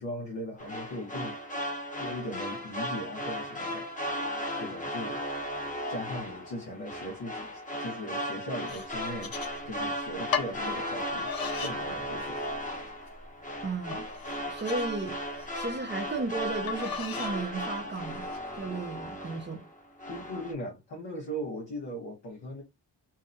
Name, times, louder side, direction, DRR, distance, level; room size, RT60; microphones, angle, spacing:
voice 1, 0.0-1.4 2.0-4.3 4.6-5.2 5.9-9.4 9.7-11.3 11.6-12.4 20.1-22.6, equal, 90° left, 0.9 m, -39 dB
sound 1, 0.6-19.7 20.0-20.5, equal, 20° left, 0.7 m, -36 dB
sound 2, 8.7-9.9 10.3-10.6 11.2-11.8 12.2-12.7 13.2-13.3 13.9-15.5 16.7-17.4 17.9-18.4, left 7 dB, 60° left, 0.6 m, -36 dB
voice 2, 13.6-14.1 14.5-15.2 15.5-18.3 18.5-19.7, right 3 dB, 25° right, 0.5 m, -34 dB
2.6 x 2.1 x 2.5 m
wide cardioid pair, 95°, 41 cm